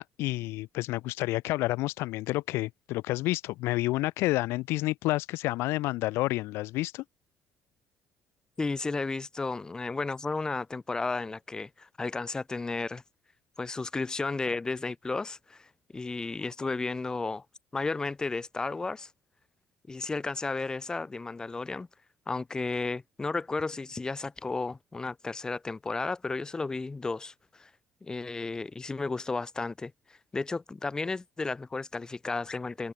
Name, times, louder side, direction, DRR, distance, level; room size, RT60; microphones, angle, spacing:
voice 1, 0.0-7.0, left 19 dB, 90° left, 1.7 m, -29 dB
voice 2, 8.6-13.0 13.6-17.4 17.7-19.1 19.9-21.9 22.3-27.7 28.0-32.9, left 3 dB, 15° left, 1.4 m, -33 dB
cardioid pair, 135°, 4 cm